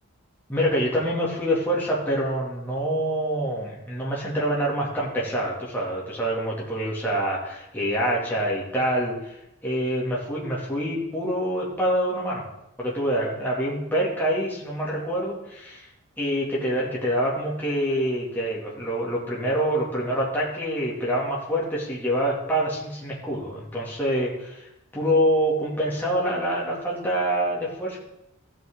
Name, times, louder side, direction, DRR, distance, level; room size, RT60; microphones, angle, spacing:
voice 1, 0.5-12.4 12.8-15.9 16.2-24.6 24.9-28.0, equal, 10° left, -6 dB, 2.4 m, -26 dB
16.0 x 6.3 x 3.8 m, 0.86 s
head